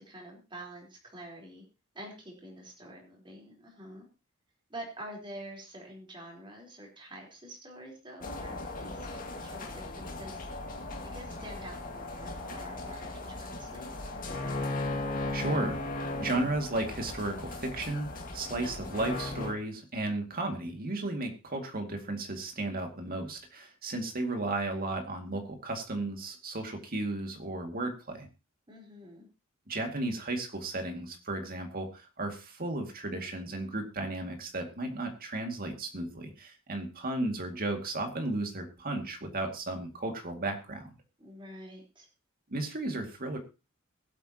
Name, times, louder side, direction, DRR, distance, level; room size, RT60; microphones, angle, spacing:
voice 1, 0.0-1.6 1.9-4.1 4.7-10.5 11.1-14.0 28.7-29.3 41.2-42.1, right 1 dB, 25° right, -1 dB, 4.2 m, -47 dB
sound 1, 8.2-19.5, left 2 dB, 40° left, 2.1 m, -37 dB
voice 2, 15.2-28.3 29.7-40.9 42.5-43.4, right 2 dB, 45° right, 4 dB, 2.3 m, -34 dB
22.5 x 8.3 x 3.0 m, 0.30 s
head